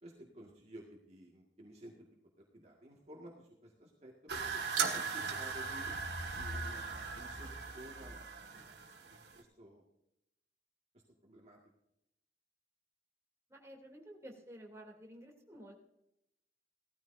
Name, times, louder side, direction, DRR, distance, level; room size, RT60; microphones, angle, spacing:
voice 1, 0.0-2.1 2.5-5.9 6.4-8.7 9.4-9.9 11.2-11.6, right 1 dB, 40° right, -2 dB, 1.9 m, -54 dB
sound 1, 4.3-9.4, right 5 dB, 75° right, 2.0 m, -38 dB
voice 2, 13.5-15.7, equal, 15° right, -1 dB, 3.0 m, -52 dB
18.0 x 14.0 x 2.7 m, 0.84 s
head